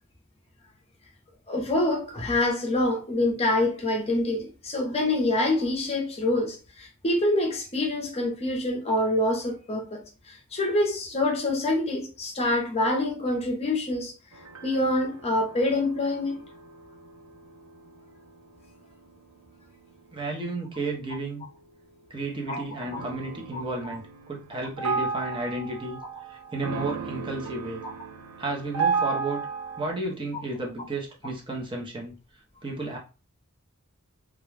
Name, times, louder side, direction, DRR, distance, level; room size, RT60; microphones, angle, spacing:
voice 1, 1.5-10.0 10.3-14.1 14.6-16.4 22.5-22.6 22.9-23.0 23.5-23.6 23.9-24.0 27.8-27.9, left 1 dB, 30° left, 0.6 m, -26 dB
sound 1, 14.3-22.1 22.8-29.9, right 5 dB, 80° right, 0.6 m, -34 dB
voice 2, 20.1-21.4 22.1-26.0 26.3-27.8 28.4-29.4 29.8-32.1 32.6-33.0, right 2 dB, 25° right, 0.6 m, -32 dB
2.4 x 2.1 x 3.1 m
head